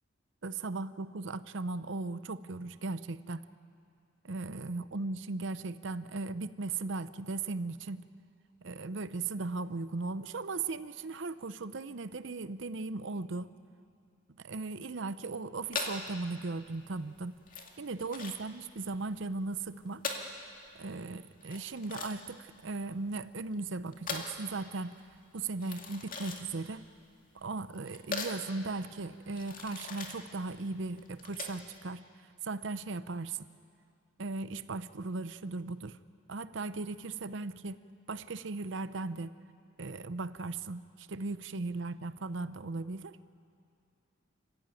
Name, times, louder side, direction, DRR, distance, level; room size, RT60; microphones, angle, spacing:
voice 1, 0.4-3.4 4.2-8.1 8.6-13.5 14.4-17.4 17.8-20.1 20.7-25.0 25.3-26.9 27.3-32.0 32.4-33.4 34.2-36.0 36.3-37.8 38.1-39.4 39.8-43.2, right 3 dB, 65° right, 14 dB, 0.7 m, -37 dB
sound 1, 15.7-31.8, left 4 dB, 45° left, 2.3 m, -42 dB
29.5 x 15.5 x 9.1 m, 2.5 s
head